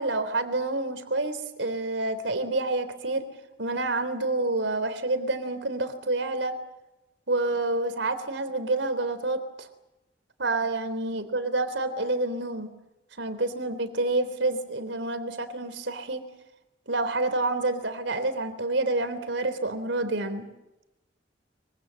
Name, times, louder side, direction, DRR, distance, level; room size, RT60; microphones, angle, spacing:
voice 1, 0.0-3.3 3.6-6.5 7.3-9.7 10.4-12.7 13.2-16.2 16.9-20.5, right 2 dB, 85° right, 10 dB, 3.5 m, -28 dB
24.5 x 24.5 x 7.7 m, 0.96 s
head